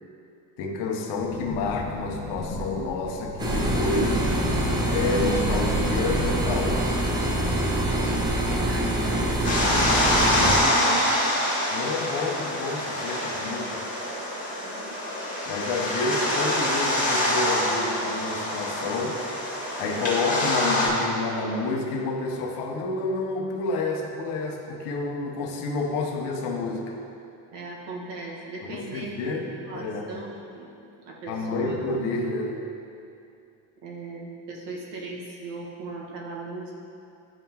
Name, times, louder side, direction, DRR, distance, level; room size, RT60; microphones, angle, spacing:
voice 1, 0.6-4.3 4.9-6.9 11.7-13.8 15.5-19.2 19.8-27.0 28.6-30.2 31.3-32.6, left 3 dB, 65° left, 1 dB, 0.8 m, -29 dB
sound 1, 1.1-6.7, left 3 dB, 40° left, 0.6 m, -35 dB
sound 2, 3.4-10.6, right 1 dB, 10° right, 0.3 m, -25 dB
voice 2, 8.5-11.1 14.6-15.0 27.5-29.4 29.6-30.7 31.0-31.9 33.8-36.7, right 3 dB, 75° right, -4 dB, 1.4 m, -37 dB
sound 3, 9.4-20.9, left 1 dB, 20° left, 1.5 m, -25 dB
11.0 x 3.7 x 2.9 m, 2.6 s
cardioid pair, 155°, 43 cm